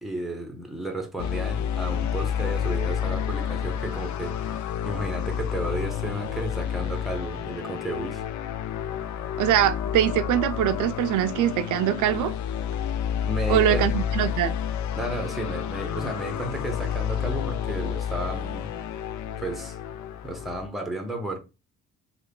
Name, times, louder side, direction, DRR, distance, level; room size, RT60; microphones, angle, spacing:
voice 1, 0.0-8.2 13.2-13.9 15.0-18.7 19.4-19.8 20.2-21.4, right 1 dB, ahead, 0.9 m, -33 dB
sound 1, 1.2-20.7, left 9 dB, 70° left, 0.5 m, -30 dB
voice 2, 9.4-12.3 13.5-14.5, right 11 dB, 80° right, 0.5 m, -23 dB
3.2 x 2.3 x 3.7 m
cardioid pair, 90°, 30 cm